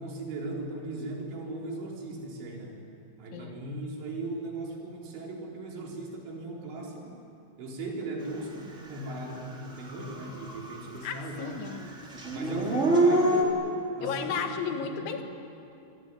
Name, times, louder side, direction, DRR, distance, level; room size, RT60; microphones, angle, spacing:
voice 1, 0.0-2.8 3.2-7.2 7.6-11.6 12.3-13.6 14.0-15.1, right 2 dB, 70° right, -1 dB, 6.3 m, -38 dB
Dog / Siren, 9.1-9.2 9.6-11.1 11.3-13.4, right 1 dB, 20° right, 2.9 m, -25 dB
voice 2, 11.0-12.0 14.0-15.2, left 6 dB, 75° left, 5 dB, 4.2 m, -34 dB
26.5 x 22.5 x 9.9 m, 2.6 s
omnidirectional pair, 5.4 m